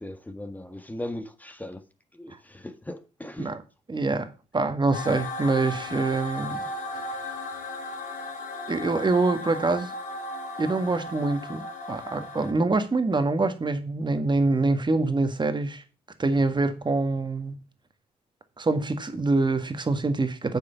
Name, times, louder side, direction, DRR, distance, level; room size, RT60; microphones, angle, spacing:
voice 1, 0.0-1.8 2.1-3.6, left 1 dB, 10° left, 1.5 m, -38 dB
voice 2, 3.9-6.6 8.7-9.9 10.6-15.8 16.2-17.6 18.6-20.6, right 3 dB, 30° right, 1.8 m, -25 dB
sound 1, 4.9-12.5, left 2 dB, 65° left, 3.6 m, -36 dB
8.8 x 4.9 x 7.1 m
supercardioid pair, 60°, 15 cm